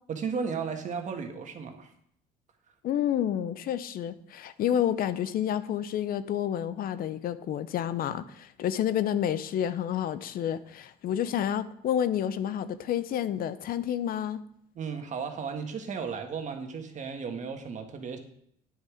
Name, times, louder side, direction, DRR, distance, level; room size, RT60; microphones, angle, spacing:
voice 1, 0.1-1.9 14.7-18.2, right 5 dB, 45° right, 5 dB, 1.6 m, -34 dB
voice 2, 2.8-14.4, left 10 dB, 60° left, 14 dB, 0.6 m, -29 dB
9.5 x 6.8 x 4.9 m, 0.70 s
cardioid pair, 110°, 17 cm